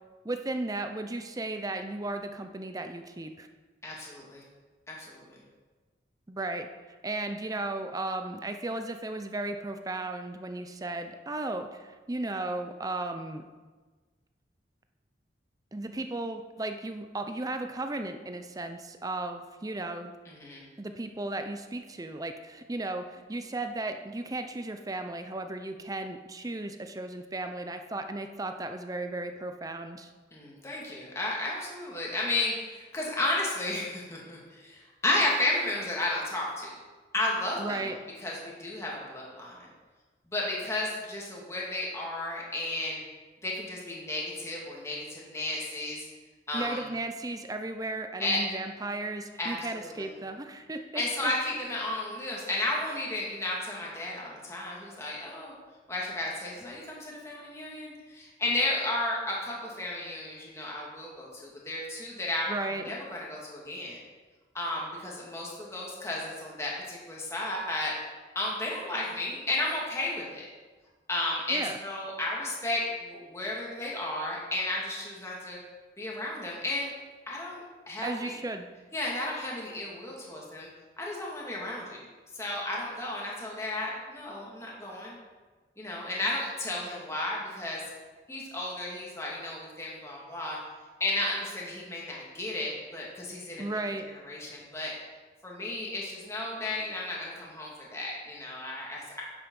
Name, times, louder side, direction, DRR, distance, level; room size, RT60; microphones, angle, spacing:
voice 1, 0.2-3.5 6.3-6.7 7.0-13.4 15.7-20.1 20.8-30.1 37.6-38.0 46.5-51.3 62.5-62.8 71.5-71.8 78.0-78.7 93.6-94.0, right 2 dB, 20° right, 7 dB, 0.6 m, -35 dB
voice 2, 3.8-4.4 4.9-5.3 20.3-20.7 30.3-36.7 37.1-37.9 38.2-39.7 40.3-43.0 43.4-46.0 46.5-46.9 48.2-48.4 49.4-50.1 50.9-55.5 55.9-64.0 64.5-67.9 68.4-70.5 71.1-75.6 76.0-76.9 77.3-78.3 78.9-80.7 81.0-82.1 82.3-85.2 85.8-87.8 88.3-90.6 91.0-93.7 94.2-94.9 95.4-99.2, left 2 dB, 15° left, -4 dB, 2.0 m, -33 dB
9.7 x 7.9 x 5.4 m, 1.3 s
head